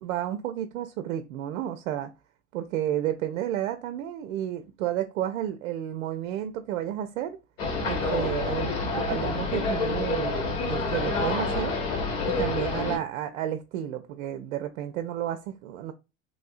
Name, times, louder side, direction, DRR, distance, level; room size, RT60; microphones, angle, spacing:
voice 1, 0.0-2.1 2.5-7.4 7.8-11.8 12.3-15.9, right 11 dB, 65° right, 0.5 m, -31 dB
sound 1, 7.6-13.0, left 3 dB, 70° left, 1.5 m, -28 dB
3.0 x 2.6 x 2.4 m
hypercardioid pair, 95°, 40 cm